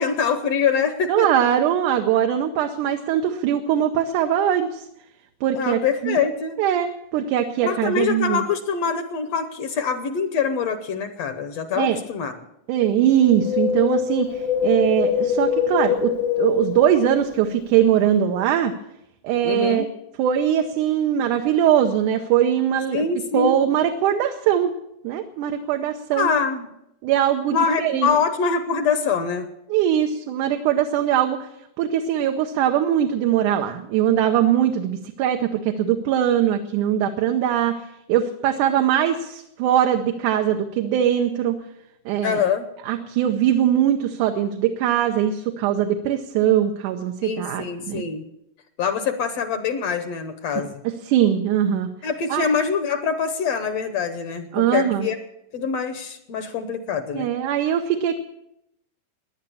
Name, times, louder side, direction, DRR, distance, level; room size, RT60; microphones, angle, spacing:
voice 1, 0.0-1.3 5.5-6.6 7.6-12.3 19.4-19.9 22.9-23.6 26.1-26.7 27.5-29.5 42.2-42.7 47.2-48.3 48.8-50.8 52.0-55.2 55.5-57.3, left 6 dB, 70° left, 9 dB, 1.8 m, -24 dB
voice 2, 1.1-4.9 5.4-6.2 6.6-8.4 11.8-12.0 12.7-14.3 14.6-18.7 19.2-19.9 20.2-23.1 23.3-24.7 25.0-26.3 27.0-28.1 29.7-31.4 31.8-37.8 38.1-41.6 42.1-42.4 42.9-48.0 50.8-51.9 52.3-52.5 54.5-55.1 57.1-58.2, right 10 dB, 80° right, 5 dB, 2.4 m, -21 dB
Wind, 13.2-17.5 17.8-17.9, left 7 dB, 85° left, 2.8 m, -24 dB
17.5 x 10.5 x 7.1 m, 0.83 s
omnidirectional pair, 3.6 m